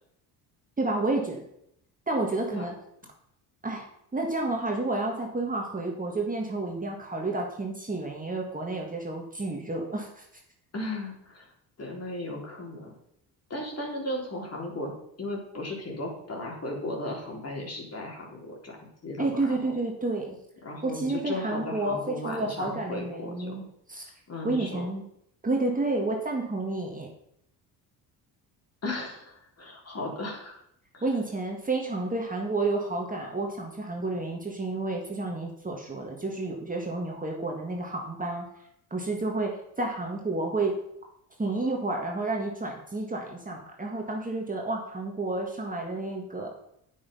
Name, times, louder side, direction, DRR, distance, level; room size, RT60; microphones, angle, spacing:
voice 1, 0.8-1.4 2.1-2.7 3.6-3.9 4.1-10.2 19.2-20.4 20.8-23.6 23.9-24.1 24.4-25.0 25.4-27.1 31.0-38.5 38.9-39.5 39.8-40.7 41.4-46.5, right 2 dB, 20° right, 0 dB, 1.9 m, -30 dB
voice 2, 10.7-11.5 11.8-12.9 13.5-14.9 15.2-18.8 19.0-19.7 20.6-23.5 24.3-24.9 28.8-30.6 30.9-31.0, left 1 dB, 35° left, -1 dB, 3.8 m, -36 dB
8.7 x 8.7 x 5.5 m, 0.75 s
supercardioid pair, 80°, 42 cm